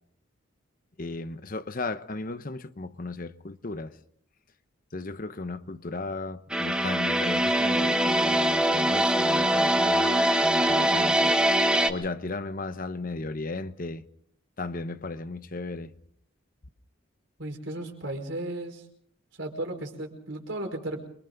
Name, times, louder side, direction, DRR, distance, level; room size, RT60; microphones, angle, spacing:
voice 1, 1.0-3.9 4.9-10.1 10.4-11.3 11.9-14.1 14.6-15.9, left 3 dB, 40° left, 0.9 m, -35 dB
sound 1, 6.5-11.9, right 1 dB, 5° right, 1.2 m, -23 dB
voice 2, 17.4-18.8 19.3-21.0, right 1 dB, 60° right, 4.9 m, -35 dB
27.5 x 24.0 x 3.9 m
head